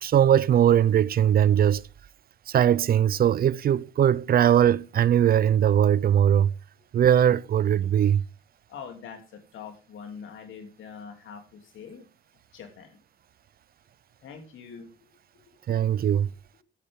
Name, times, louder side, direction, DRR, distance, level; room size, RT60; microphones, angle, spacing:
voice 1, 0.0-1.8 2.5-6.5 6.9-8.2 15.7-16.3, right 10 dB, 50° right, 0.5 m, -20 dB
voice 2, 8.7-12.1 12.5-13.0 14.2-15.9, left 6 dB, 75° left, 2.9 m, -44 dB
11.5 x 10.0 x 3.6 m
cardioid pair, 90°, 20 cm